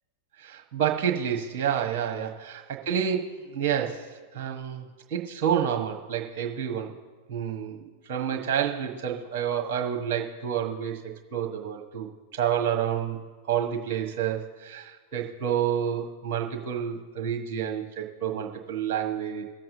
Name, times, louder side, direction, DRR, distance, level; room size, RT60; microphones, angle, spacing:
voice 1, 0.4-2.6 2.9-4.1 4.3-6.9 7.3-11.0 11.3-13.2 13.5-19.4, right 9 dB, 45° right, 2 dB, 1.4 m, -29 dB
21.5 x 7.5 x 2.8 m, 1.4 s
figure-of-eight pair, 90°, 0 cm